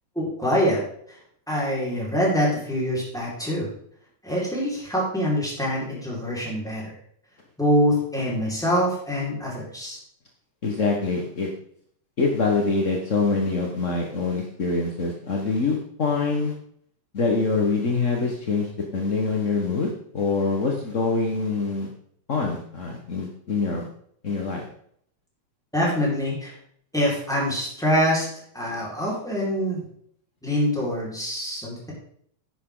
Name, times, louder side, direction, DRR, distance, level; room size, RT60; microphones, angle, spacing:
voice 1, 0.1-0.8 1.5-3.7 4.2-6.9 7.6-10.0 25.7-26.5 26.9-28.2 28.5-29.8 30.4-31.9, equal, ahead, -5 dB, 4.6 m, -24 dB
voice 2, 10.6-11.5 12.2-16.5 17.1-21.9 22.3-23.9 24.2-24.6, left 4 dB, 50° left, 1 dB, 0.9 m, -25 dB
11.0 x 10.0 x 3.9 m, 0.65 s
omnidirectional pair, 3.5 m